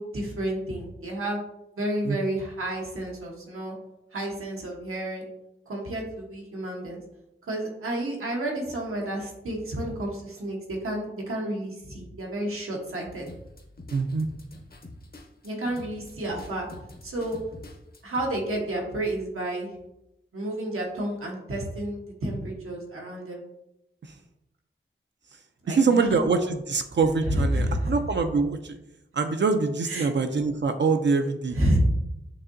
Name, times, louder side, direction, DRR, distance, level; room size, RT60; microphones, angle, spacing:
voice 1, 0.0-1.4 1.8-3.7 4.1-5.2 5.7-7.0 7.5-13.3 15.4-16.7 17.0-17.4 18.0-19.7 20.3-23.4 25.6-26.2 27.2-27.9 29.9-30.1 31.5-31.8, right 1 dB, 90° right, -1 dB, 1.1 m, -30 dB
sound 1, 13.3-18.3, left 2 dB, 45° left, 0.8 m, -46 dB
voice 2, 13.9-14.3 25.7-28.8 29.1-31.6, right 4 dB, 60° right, 7 dB, 0.4 m, -24 dB
6.7 x 2.7 x 2.6 m, 0.86 s
wide cardioid pair, 60°, 21 cm